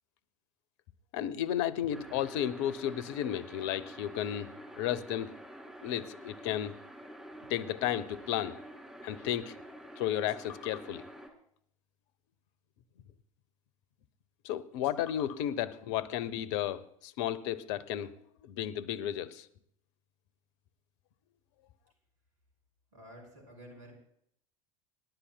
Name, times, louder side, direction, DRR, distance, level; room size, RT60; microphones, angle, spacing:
voice 1, 1.1-4.5 4.8-5.3 5.8-6.8 7.5-8.6 9.0-9.6 10.0-11.0 14.4-18.1 18.4-19.5, left 11 dB, 55° left, 16 dB, 0.8 m, -33 dB
sound 1, 1.9-11.3, equal, 5° right, 2.5 m, -48 dB
voice 2, 22.9-23.9, equal, 70° right, 2 dB, 5.6 m, -51 dB
27.0 x 11.5 x 2.3 m, 0.69 s
figure-of-eight pair, 75°, 18 cm